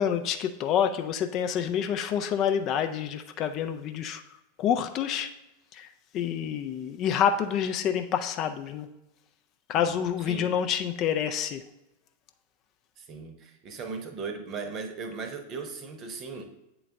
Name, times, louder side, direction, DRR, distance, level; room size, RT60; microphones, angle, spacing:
voice 1, 0.0-4.2 4.6-5.3 5.7-5.9 6.1-8.9 9.7-11.6, left 8 dB, 35° left, 7 dB, 0.4 m, -27 dB
voice 2, 9.7-10.5 13.0-16.4, right 4 dB, 30° right, 7 dB, 0.9 m, -38 dB
8.3 x 3.9 x 3.3 m, 0.93 s
figure-of-eight pair, 90°, 0 cm